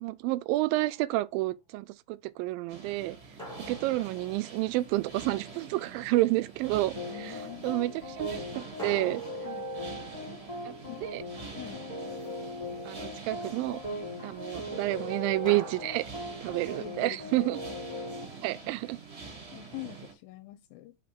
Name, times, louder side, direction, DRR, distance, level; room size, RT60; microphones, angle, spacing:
voice 1, 0.0-3.2 3.7-7.0 7.2-7.3 7.6-9.2 10.7-10.8 11.1-11.2 12.9-13.8 14.2-16.0 16.4-17.6 18.4-19.0, right 18 dB, 85° right, 2.3 m, -29 dB
sound 1, 0.8-1.3 3.4-5.2 8.8-11.4 15.5-17.1, equal, ahead, 1.5 m, -46 dB
sound 2, 2.7-20.1, right 5 dB, 35° right, 1.0 m, -46 dB
sound 3, 6.9-18.2, left 1 dB, 55° left, 0.4 m, -39 dB
voice 2, 7.1-7.7 9.4-9.7 10.9-11.0 11.5-11.8 16.8-17.6 18.1-18.8 19.5-21.0, left 17 dB, 90° left, 2.4 m, -45 dB
5.1 x 4.2 x 5.9 m
omnidirectional pair, 4.1 m